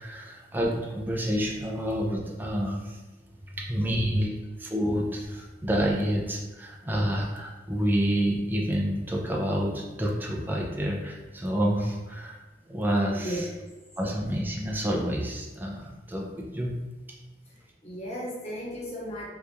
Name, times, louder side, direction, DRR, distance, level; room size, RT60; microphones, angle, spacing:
voice 1, 0.0-3.0 3.6-4.3 4.6-12.4 12.7-13.5 14.0-16.8, equal, 10° right, -1 dB, 0.4 m, -28 dB
voice 2, 17.5-19.3, equal, 40° left, -5 dB, 1.1 m, -35 dB
2.9 x 2.4 x 3.4 m, 1.2 s
head